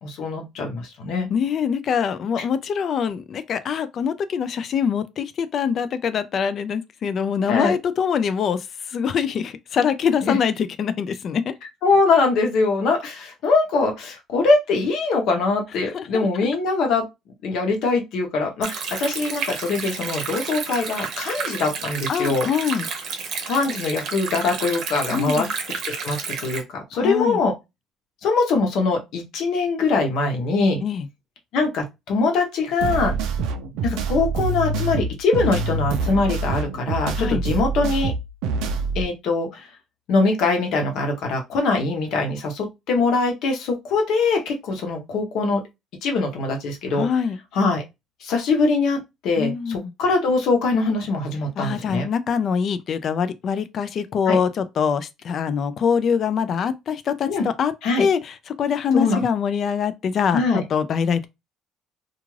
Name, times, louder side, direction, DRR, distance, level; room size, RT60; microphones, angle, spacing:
voice 1, 0.0-1.3 2.4-2.5 7.5-7.7 10.3-10.4 11.8-17.1 17.4-22.5 23.5-27.5 28.2-30.8 31.5-33.1 33.8-38.1 38.9-39.7 40.1-45.6 46.0-47.1 47.5-47.8 48.2-52.1 54.3-54.4 57.3-57.4 57.8-58.0 58.9-59.3 60.3-60.6, left 3 dB, 60° left, 0.9 m, -22 dB
voice 2, 1.3-11.5 15.9-16.5 22.1-22.9 25.1-25.5 27.0-27.4 30.8-31.1 37.1-37.4 46.9-47.4 49.4-49.9 51.6-57.7 58.0-61.3, left 7 dB, 35° left, 0.3 m, -24 dB
Stream, 18.6-26.6, right 5 dB, 55° right, 0.7 m, -31 dB
sound 1, 32.8-39.0, right 4 dB, 80° right, 0.5 m, -25 dB
2.4 x 2.4 x 3.1 m
cardioid pair, 170°, 0 cm